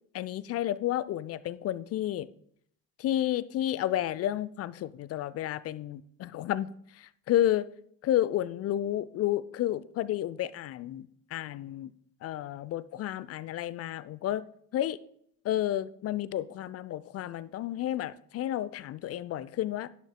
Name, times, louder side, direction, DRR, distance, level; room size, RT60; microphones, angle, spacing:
voice 1, 0.1-2.3 3.0-7.7 8.0-11.9 12.2-14.4 14.7-15.0 15.4-19.9, left 12 dB, 35° left, 0.5 m, -31 dB
11.0 x 10.5 x 2.2 m
figure-of-eight pair, 50°, 46 cm